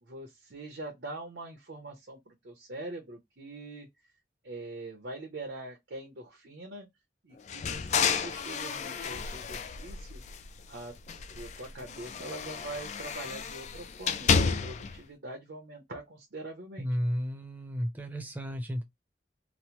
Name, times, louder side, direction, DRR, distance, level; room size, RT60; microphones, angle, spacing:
voice 1, 0.0-3.9 4.4-6.9 7.2-10.2 10.7-10.9 11.3-16.9, right 2 dB, 80° right, 0.8 m, -43 dB
sound 1, 7.5-10.7 11.0-15.0, left 6 dB, 40° left, 0.3 m, -31 dB
voice 2, 16.8-18.8, equal, 10° right, 0.6 m, -33 dB
3.0 x 2.0 x 2.9 m
head